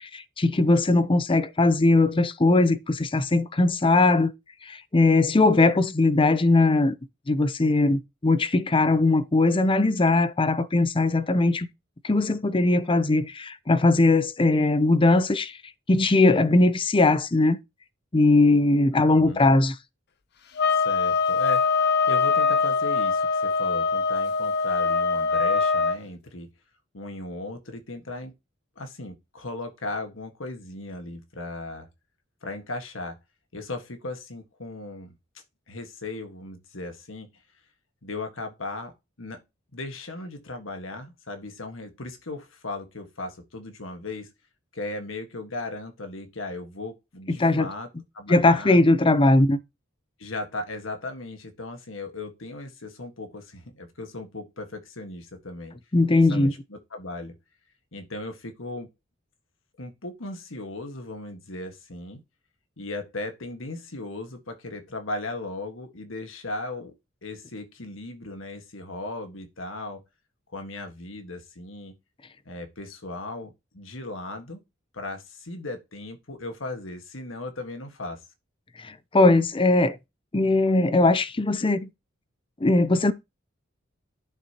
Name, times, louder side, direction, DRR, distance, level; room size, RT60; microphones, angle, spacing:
voice 1, 0.0-4.3 4.6-7.0 7.3-11.7 12.0-15.6 15.9-17.6 18.1-19.7 47.3-47.7 48.3-49.6 55.9-56.5 78.8-80.0 80.3-81.9 82.6-83.1, left 2 dB, 25° left, 0.6 m, -20 dB
voice 2, 18.9-19.5 20.7-26.5 26.9-28.3 28.7-31.9 32.4-33.2 33.5-35.1 35.7-37.3 38.0-39.4 39.7-44.3 44.7-47.9 48.1-48.8 50.2-55.7 56.1-57.3 57.9-58.9 59.8-62.2 62.8-66.9 67.2-70.0 70.5-72.0 72.4-74.6 74.9-78.2, left 2 dB, 80° left, 1.6 m, -37 dB
sound 1, 20.6-26.0, left 4 dB, 55° left, 0.8 m, -23 dB
11.5 x 6.6 x 2.9 m
head